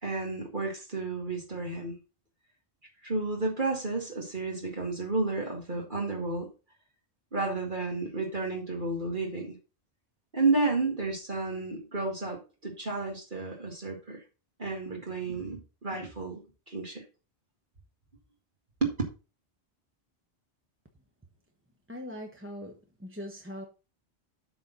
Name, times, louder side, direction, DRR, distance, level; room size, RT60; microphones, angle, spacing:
voice 1, 0.0-1.9 3.0-6.5 7.3-9.6 10.3-14.2 14.6-17.0 18.8-18.9, right 3 dB, 50° right, 2.2 m, -31 dB
voice 2, 21.9-23.6, left 1 dB, 10° right, 1.0 m, -41 dB
12.5 x 4.3 x 4.0 m
omnidirectional pair, 1.1 m